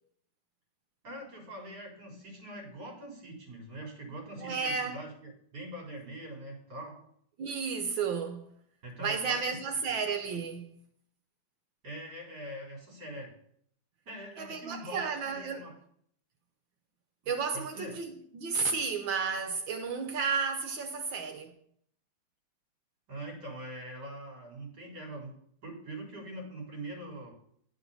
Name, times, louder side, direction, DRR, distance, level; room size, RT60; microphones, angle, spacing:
voice 1, 1.0-7.0 8.8-9.6 9.9-10.0 11.8-13.3 14.1-15.8 17.2-17.9 23.1-25.4 25.6-27.3, right 1 dB, 50° right, 4.1 m, -43 dB
voice 2, 4.4-5.0 7.4-8.5 9.0-10.7 14.4-15.7 17.3-21.5, right 5 dB, 70° right, 1.5 m, -32 dB
11.0 x 6.0 x 5.5 m
omnidirectional pair, 2.4 m